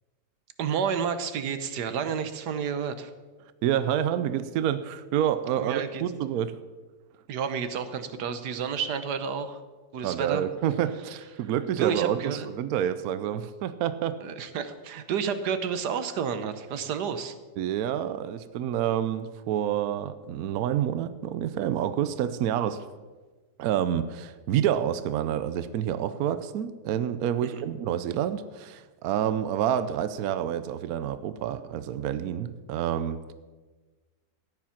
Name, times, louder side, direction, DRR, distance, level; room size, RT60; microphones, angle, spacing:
voice 1, 0.6-3.1 5.6-6.0 7.3-9.6 9.9-10.4 11.8-12.5 14.2-17.4 27.4-27.6, right 7 dB, 90° right, 10 dB, 1.5 m, -30 dB
voice 2, 3.6-6.6 10.0-14.2 17.6-22.8 23.6-33.3, right 10 dB, 70° right, 12 dB, 1.1 m, -28 dB
14.5 x 10.0 x 5.8 m, 1.3 s
omnidirectional pair, 1.7 m